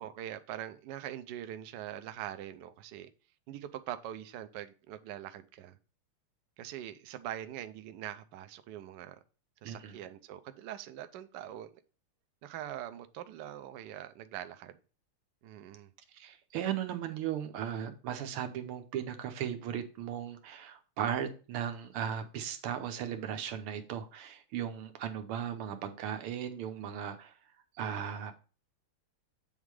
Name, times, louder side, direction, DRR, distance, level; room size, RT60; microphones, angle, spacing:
voice 1, 0.0-3.1 3.5-5.8 6.6-9.2 9.6-11.7 12.4-14.8 15.4-15.9, right 11 dB, 70° right, 9 dB, 1.0 m, -43 dB
voice 2, 9.6-10.0 16.1-27.4 27.8-28.3, right 9 dB, 90° right, 7 dB, 1.7 m, -37 dB
8.2 x 3.7 x 4.7 m, 0.36 s
omnidirectional pair, 2.4 m